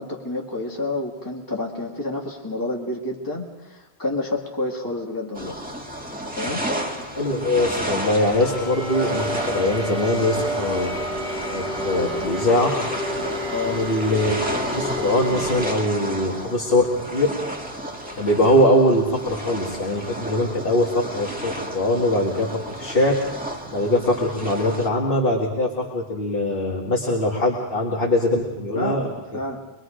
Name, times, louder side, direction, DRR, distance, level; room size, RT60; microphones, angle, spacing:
voice 1, 0.0-5.6 6.3-6.6 13.5-13.8 28.7-29.6, left 2 dB, 20° left, -1 dB, 2.0 m, -29 dB
sound 1, 5.3-24.9, equal, 10° right, 2.1 m, -32 dB
voice 2, 7.1-10.9 11.5-12.7 13.6-14.4 14.7-17.3 18.2-23.1 23.7-29.0 29.3-29.4, left 1 dB, 60° left, -2 dB, 2.3 m, -22 dB
sound 2, 8.4-15.7, equal, 45° right, 3.0 m, -30 dB
25.0 x 21.5 x 5.1 m, 1.1 s
omnidirectional pair, 1.1 m